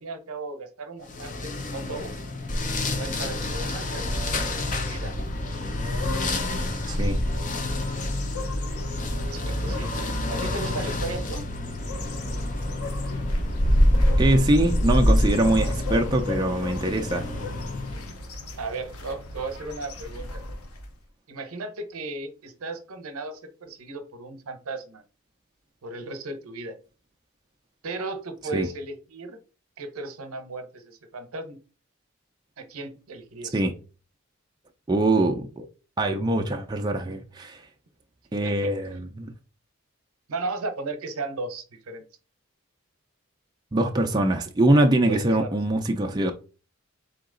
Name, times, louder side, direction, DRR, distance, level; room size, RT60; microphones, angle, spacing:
voice 1, 0.0-2.1 2.8-5.3 9.2-9.9 10.3-11.5 18.6-20.4 21.3-25.0 25.8-26.8 27.8-29.4 29.8-31.6 32.6-33.6 38.4-38.8 40.3-42.0 45.1-45.6, right 3 dB, 80° right, 0.8 m, -36 dB
sound 1, 1.1-18.2, left 1 dB, 35° left, 0.6 m, -27 dB
sound 2, 3.7-21.0, left 1 dB, 85° left, 0.8 m, -36 dB
voice 2, 6.9-7.2 14.2-17.3 28.5-28.7 33.5-33.7 34.9-35.6 36.0-37.6 38.3-39.3 43.7-46.3, right 1 dB, 20° right, 0.4 m, -23 dB
3.8 x 2.9 x 3.7 m
head